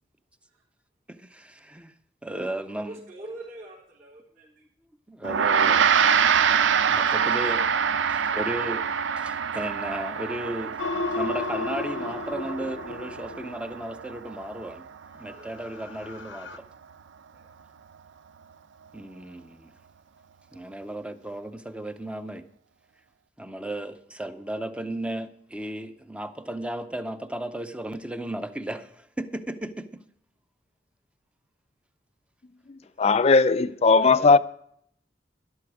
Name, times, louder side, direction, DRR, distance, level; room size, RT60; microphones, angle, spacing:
voice 1, 1.1-1.9 2.2-3.0 5.1-7.6 8.0-8.8 9.2-10.7 11.1-14.9 15.1-16.6 18.9-19.7 20.5-22.4 23.4-30.0 34.0-34.3, right 1 dB, 5° right, 0.7 m, -35 dB
voice 2, 2.7-4.7 15.2-15.5 17.3-17.5, right 1 dB, 50° right, 4.0 m, -44 dB
Gong, 5.2-14.9, right 7 dB, 80° right, 0.5 m, -25 dB
sound 1, 10.8-14.0 15.4-16.6, left 3 dB, 80° left, 0.7 m, -33 dB
voice 3, 33.0-34.4, left 4 dB, 35° left, 0.4 m, -18 dB
13.0 x 12.0 x 4.8 m
head